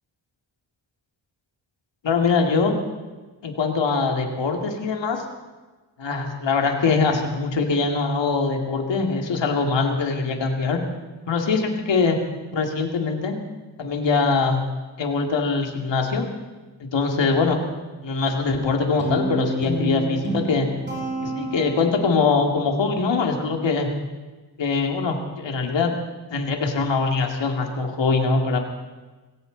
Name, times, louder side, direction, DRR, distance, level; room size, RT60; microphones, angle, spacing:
voice 1, 2.0-2.8 3.4-5.2 6.0-10.8 11.3-12.2 12.5-13.4 13.8-14.6 15.0-16.3 16.8-17.6 18.0-20.7 21.2-23.9 24.6-25.9 26.3-28.6, left 4 dB, 75° left, 3 dB, 2.5 m, -22 dB
Guitar, 19.0-22.3, right 1 dB, 25° right, 6.3 m, -29 dB
21.5 x 17.0 x 4.0 m, 1.2 s
wide cardioid pair, 95°, 44 cm